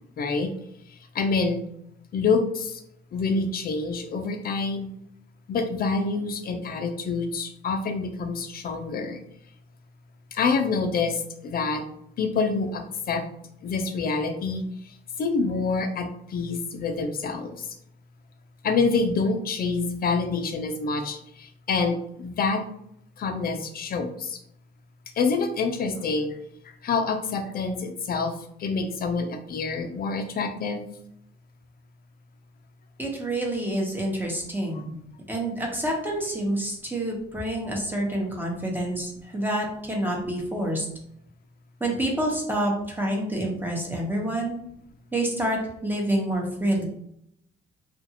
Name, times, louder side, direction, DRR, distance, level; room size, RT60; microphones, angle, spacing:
voice 1, 0.2-0.5 0.9-1.6 2.1-2.8 3.1-4.9 5.5-9.2 10.3-11.8 12.2-13.2 13.6-17.8 18.6-22.6 23.2-24.4 25.2-26.4 26.6-28.3 28.6-30.8 34.7-34.8, left 4 dB, 50° left, 6 dB, 0.5 m, -27 dB
voice 2, 33.0-35.0 35.3-40.8 41.8-44.6 45.1-46.8, right 1 dB, 10° right, -1 dB, 0.9 m, -27 dB
2.5 x 2.4 x 2.8 m, 0.72 s
cardioid pair, 90°, 20 cm